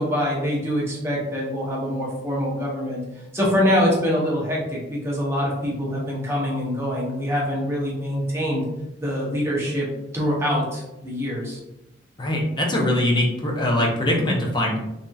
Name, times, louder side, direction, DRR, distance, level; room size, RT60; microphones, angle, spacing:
voice 1, 0.0-8.6 9.0-9.9 10.1-11.6, equal, 15° right, -4 dB, 0.7 m, -24 dB
voice 2, 12.2-14.8, left 1 dB, 20° left, -1 dB, 0.5 m, -22 dB
3.3 x 2.7 x 2.3 m, 0.93 s
head